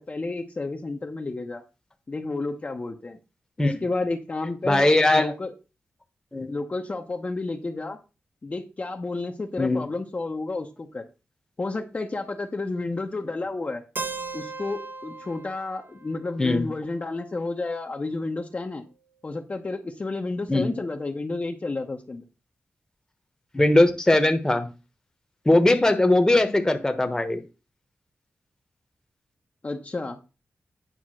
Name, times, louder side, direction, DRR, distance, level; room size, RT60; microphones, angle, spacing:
voice 1, 0.0-1.6 2.1-3.2 3.6-5.5 6.5-8.0 8.4-11.1 11.6-13.8 14.3-18.8 19.2-22.2 29.6-30.2, left 3 dB, 35° left, 2 dB, 0.9 m, -31 dB
voice 2, 4.6-5.3 6.3-6.5 9.6-9.9 16.4-16.7 20.5-20.7 23.5-24.7 25.4-27.4, left 2 dB, 15° left, 6 dB, 1.1 m, -20 dB
Keyboard (musical), 14.0-17.8, right 3 dB, 50° right, 0.9 m, -38 dB
9.2 x 3.5 x 6.3 m, 0.31 s
wide cardioid pair, 105°, 4 cm